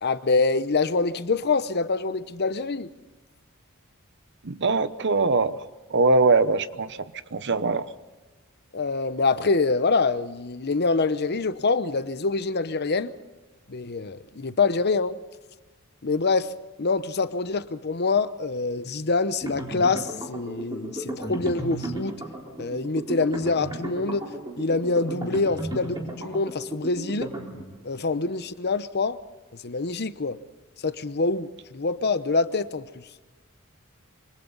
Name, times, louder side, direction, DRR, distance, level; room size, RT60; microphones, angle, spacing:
voice 1, 0.0-2.9 8.7-13.1 13.7-15.2 16.0-16.5 16.8-22.2 22.6-24.2 24.6-27.3 27.8-29.2 29.5-30.4 30.8-32.9, left 3 dB, 50° left, 0.9 m, -25 dB
voice 2, 4.4-5.6 5.9-7.9, right 3 dB, 55° right, 0.9 m, -22 dB
sound 1, 19.4-28.0, right 1 dB, 20° right, 4.2 m, -35 dB
26.0 x 25.0 x 4.0 m
head